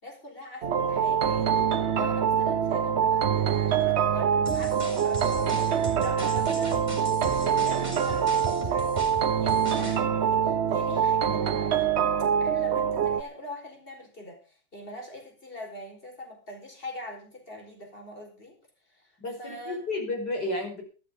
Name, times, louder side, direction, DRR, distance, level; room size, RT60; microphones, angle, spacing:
voice 1, 0.0-11.9 12.4-18.6 18.9-19.1 19.4-19.8, left 1 dB, 30° left, 2 dB, 5.2 m, -42 dB
sound 1, 0.6-13.2, right 8 dB, 50° right, 0.8 m, -25 dB
sound 2, 4.5-10.0, right 3 dB, 25° right, 4.3 m, -38 dB
voice 2, 19.2-20.8, left 2 dB, 65° left, 2 dB, 5.6 m, -32 dB
13.5 x 12.5 x 5.3 m, 0.36 s
omnidirectional pair, 1.9 m